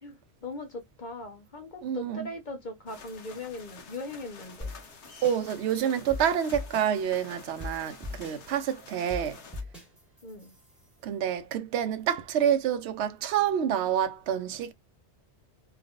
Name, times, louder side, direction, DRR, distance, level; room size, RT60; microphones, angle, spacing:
voice 1, 0.0-4.7 10.2-10.5, left 2 dB, 45° left, 1.0 m, -40 dB
voice 2, 1.8-2.3 5.2-9.4 11.0-14.7, right 9 dB, 75° right, 0.9 m, -28 dB
sound 1, 2.9-9.6, left 5 dB, 80° left, 1.2 m, -49 dB
sound 2, 4.6-11.0, left 2 dB, ahead, 1.7 m, -42 dB
3.4 x 3.0 x 2.4 m
omnidirectional pair, 1.1 m